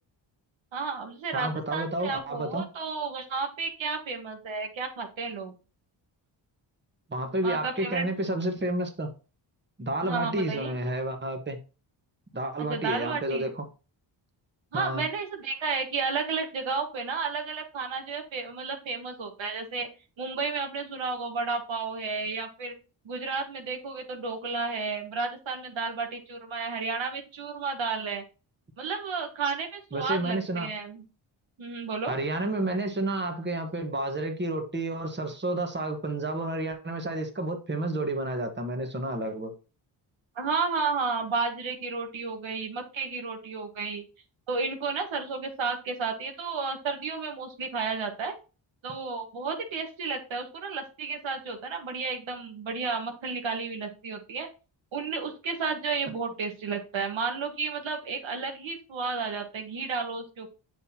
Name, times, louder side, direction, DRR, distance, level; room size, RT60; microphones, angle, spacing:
voice 1, 0.7-5.5 7.4-8.1 10.0-10.7 12.6-13.5 14.7-19.9 20.2-22.7 23.0-28.2 28.8-31.0 31.6-32.1 40.3-44.0 44.5-48.3 48.8-54.5 54.9-60.5, right 4 dB, 75° right, 1.6 m, -32 dB
voice 2, 1.3-2.6 7.1-9.1 9.8-11.6 12.3-13.6 14.7-15.0 29.9-30.7 32.1-39.5, right 1 dB, 25° right, 1.5 m, -30 dB
8.0 x 5.6 x 2.9 m
cardioid pair, 65°, 47 cm